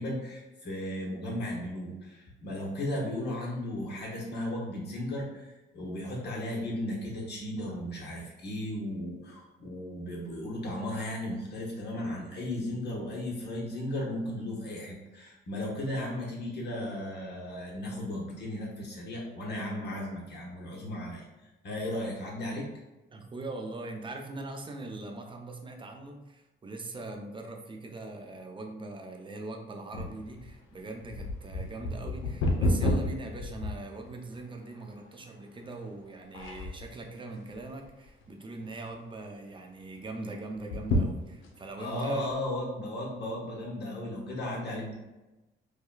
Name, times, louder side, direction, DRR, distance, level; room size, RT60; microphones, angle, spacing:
voice 1, 0.0-21.3 21.6-22.7 41.8-44.9, left 1 dB, 60° left, -3 dB, 1.0 m, -35 dB
voice 2, 23.1-42.3, right 2 dB, 25° right, 3 dB, 0.6 m, -41 dB
sound 1, 29.9-34.4 35.0-35.1 35.8-36.0 36.3-37.0 37.5-38.2 38.6-38.7 38.9-39.0 40.6-41.7 42.3-42.4, left 1 dB, 85° left, 0.6 m, -30 dB
4.8 x 2.2 x 2.3 m, 1.0 s
cardioid pair, 90°, 20 cm